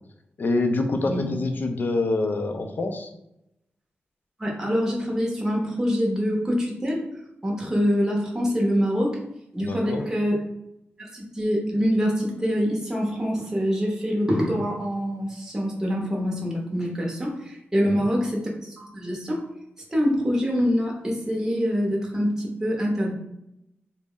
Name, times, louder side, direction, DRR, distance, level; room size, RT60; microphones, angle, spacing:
voice 1, 0.4-3.1 9.6-10.1 17.8-18.1, left 2 dB, 50° left, 6 dB, 0.4 m, -26 dB
voice 2, 4.4-7.0 7.4-9.2 9.5-10.4 11.0-19.4 19.9-23.1, equal, 15° right, -2 dB, 0.7 m, -25 dB
3.9 x 2.1 x 3.6 m, 0.83 s
wide cardioid pair, 175°, 4 cm